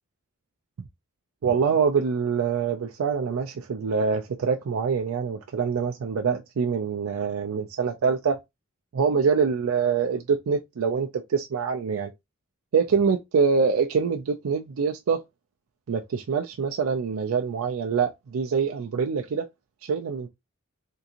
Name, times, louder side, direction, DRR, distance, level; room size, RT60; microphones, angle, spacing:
voice 1, 1.4-8.4 8.9-12.1 12.7-15.2 15.9-19.5 19.8-20.3, right 5 dB, 85° right, 0.4 m, -25 dB
3.6 x 2.5 x 2.8 m
head